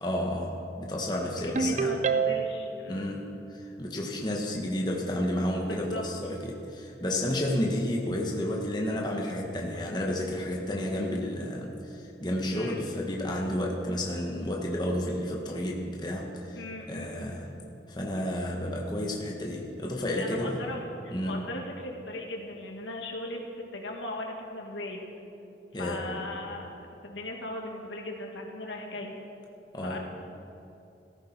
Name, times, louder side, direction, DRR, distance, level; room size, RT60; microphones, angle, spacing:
voice 1, 0.0-2.0 2.9-16.6 16.9-17.5 17.9-20.7 21.1-21.5 25.7-26.1 29.7-30.0, left 1 dB, 25° left, -1 dB, 1.4 m, -31 dB
voice 2, 1.4-3.1 5.7-6.0 12.5-12.8 16.6-17.4 20.1-23.4 23.7-25.1 25.7-29.1 29.8-30.0, left 2 dB, 90° left, 1 dB, 2.1 m, -38 dB
Ringtone, 1.6-2.7, right 5 dB, 40° right, 0.5 m, -26 dB
17.0 x 15.0 x 4.5 m, 2.8 s
head